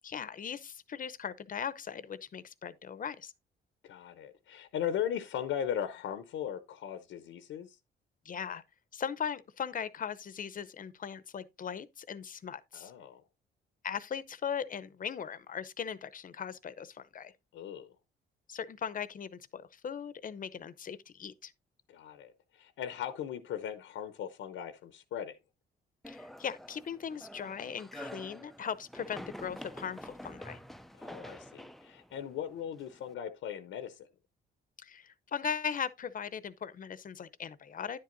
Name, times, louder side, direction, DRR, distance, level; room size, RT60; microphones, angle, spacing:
voice 1, 0.0-3.3 8.2-8.6 8.9-12.9 13.8-17.3 18.5-21.5 26.1-30.6 34.8-38.0, left 7 dB, 45° left, 0.7 m, -39 dB
voice 2, 3.8-7.8 12.7-13.2 17.5-17.9 21.9-25.4 31.0-34.1, left 9 dB, 80° left, 0.8 m, -38 dB
sound 1, 26.0-33.1, equal, ahead, 0.4 m, -48 dB
10.0 x 7.6 x 2.6 m
cardioid pair, 90°, 20 cm